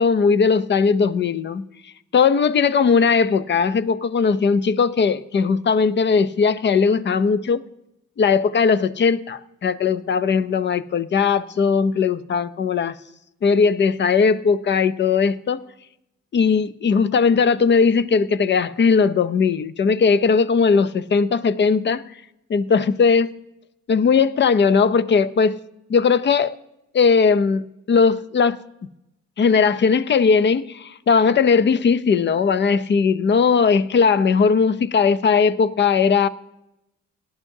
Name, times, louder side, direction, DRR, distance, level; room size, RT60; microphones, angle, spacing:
voice 1, 0.0-1.6 2.1-7.6 8.2-13.0 13.4-15.6 16.3-22.0 22.5-23.3 23.9-25.6 25.9-26.6 26.9-28.6 29.4-36.3, left 5 dB, 35° left, 0.6 m, -18 dB
18.0 x 11.0 x 2.7 m
cardioid pair, 90°, 30 cm